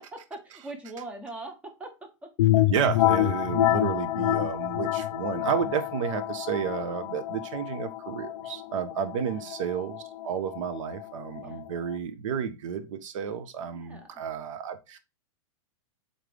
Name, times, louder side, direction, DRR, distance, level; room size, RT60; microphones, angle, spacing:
voice 1, 0.0-1.5 1.8-1.9 9.3-9.5 11.4-11.6 13.7-14.2, right 2 dB, 5° right, 0.6 m, -41 dB
sound 1, 2.4-11.9, left 15 dB, 85° left, 0.4 m, -28 dB
voice 2, 2.7-15.0, right 7 dB, 65° right, 0.7 m, -31 dB
3.8 x 3.3 x 3.3 m
supercardioid pair, 160°, 18 cm